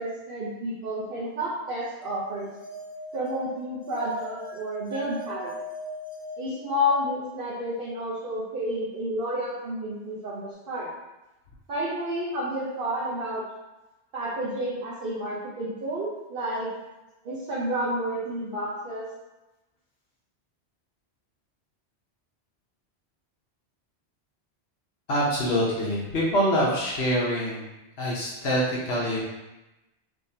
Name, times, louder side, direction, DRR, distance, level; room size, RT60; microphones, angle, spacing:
voice 1, 0.0-2.5 3.1-5.5 6.4-10.9 11.7-13.4 14.1-16.7 17.2-19.0, equal, 55° right, -7 dB, 0.9 m, -30 dB
sound 1, 2.4-7.2, left 1 dB, 35° left, 1.0 m, -40 dB
voice 2, 25.1-27.6 28.0-29.2, equal, 70° left, -5 dB, 1.0 m, -25 dB
3.5 x 3.2 x 2.7 m, 1.0 s
omnidirectional pair, 1.1 m